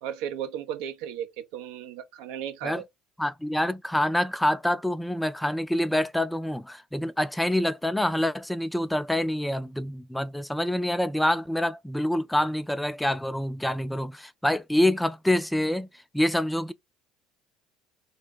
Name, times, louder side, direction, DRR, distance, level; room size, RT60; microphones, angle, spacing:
voice 1, 0.0-2.8, right 10 dB, 75° right, 0.5 m, -35 dB
voice 2, 3.2-15.9 16.1-16.7, left 1 dB, 5° left, 0.3 m, -26 dB
2.6 x 2.1 x 3.5 m
hypercardioid pair, 80°, 0 cm